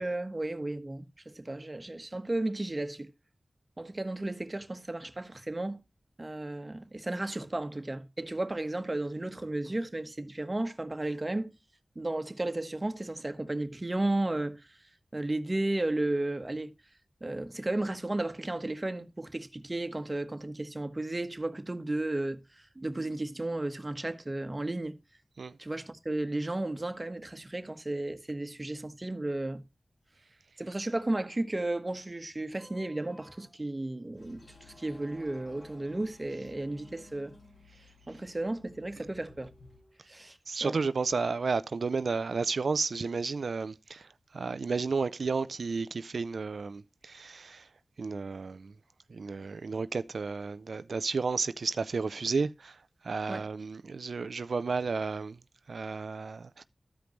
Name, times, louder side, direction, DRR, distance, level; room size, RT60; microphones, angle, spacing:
voice 1, 0.0-3.1 3.8-5.8 6.2-11.6 11.9-14.8 15.1-16.7 17.2-25.0 25.6-29.6 30.6-37.3 38.1-39.5 40.0-40.8 53.3-53.5, right 2 dB, 35° right, 1.3 m, -34 dB
sound 1, 32.5-40.3, equal, 15° left, 2.0 m, -58 dB
Toilet flush, 34.2-39.8, left 3 dB, 85° left, 6.3 m, -57 dB
voice 2, 40.5-44.1 44.3-47.7 48.0-48.7 49.1-52.8 53.0-55.4 55.7-56.6, right 4 dB, 85° right, 0.4 m, -32 dB
14.0 x 5.2 x 3.1 m
cardioid pair, 45°, 0 cm